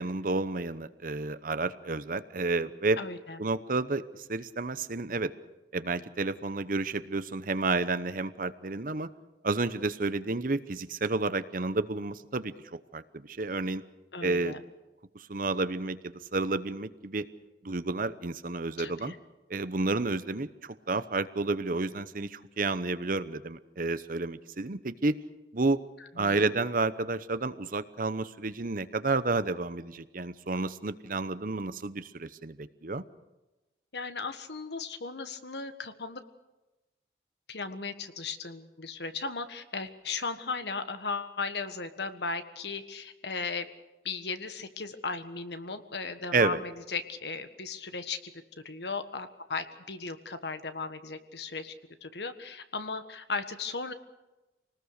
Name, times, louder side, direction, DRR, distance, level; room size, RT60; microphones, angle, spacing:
voice 1, 0.0-3.0 3.4-5.3 5.7-9.1 9.4-12.5 12.9-13.8 14.2-14.6 15.1-17.3 17.6-19.1 19.5-25.2 25.5-25.8 26.2-33.0 46.3-46.6, right 3 dB, 50° right, 13 dB, 0.9 m, -30 dB
voice 2, 3.0-3.4 14.1-14.6 18.8-19.2 26.2-26.5 33.9-36.2 37.5-43.7 44.0-48.3 48.6-51.7 52.0-53.9, left 4 dB, 75° left, 9 dB, 1.5 m, -36 dB
26.0 x 19.5 x 6.6 m, 1.0 s
head